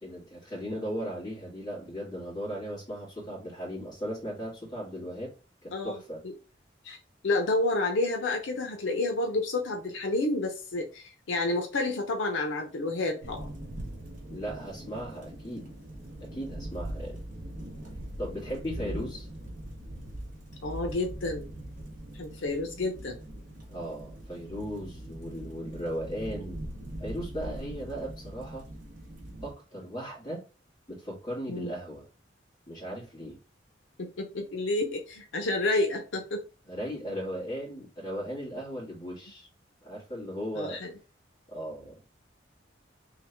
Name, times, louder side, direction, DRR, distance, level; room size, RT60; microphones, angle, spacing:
voice 1, 0.0-5.3 5.6-6.2 14.3-15.8 16.2-17.2 18.2-19.3 23.7-26.7 27.0-28.6 29.4-30.4 30.9-32.1 32.7-33.4 36.7-39.5 39.8-40.8 41.5-42.2, equal, 20° left, 2.1 m, -37 dB
voice 2, 7.2-13.5 18.8-19.1 20.6-21.5 22.1-23.2 31.5-31.7 34.0-36.4 40.5-40.9, left 2 dB, 80° left, 0.7 m, -30 dB
sound 1, 13.2-29.5, right 1 dB, 40° right, 1.1 m, -41 dB
3.4 x 3.1 x 3.3 m
head